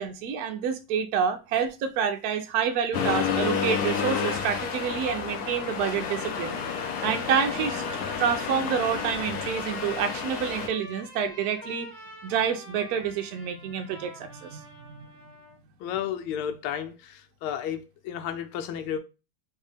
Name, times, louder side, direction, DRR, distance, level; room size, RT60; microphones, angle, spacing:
voice 1, 0.0-6.6 7.0-7.8 8.2-11.9 12.2-15.1, right 7 dB, 85° right, 0.8 m, -28 dB
Accelerating revving vroom, 2.9-10.7, left 6 dB, 70° left, 0.9 m, -30 dB
Trumpet, 7.7-15.6, left 1 dB, 50° left, 2.3 m, -46 dB
voice 2, 15.8-19.0, left 9 dB, 85° left, 1.5 m, -32 dB
4.5 x 2.9 x 3.3 m
omnidirectional pair, 2.3 m